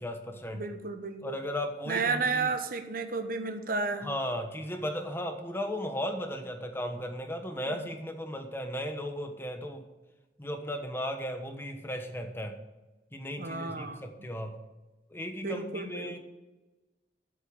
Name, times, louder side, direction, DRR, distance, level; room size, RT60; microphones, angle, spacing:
voice 1, 0.0-0.7 1.2-2.5 4.0-9.8 10.4-12.6 13.1-14.6 15.1-16.2, equal, 15° left, 5 dB, 1.2 m, -36 dB
voice 2, 0.5-1.4 1.9-4.1 7.7-7.8 13.4-14.3 15.4-16.2, right 4 dB, 55° right, 7 dB, 1.1 m, -32 dB
8.3 x 7.2 x 8.7 m, 1.1 s
head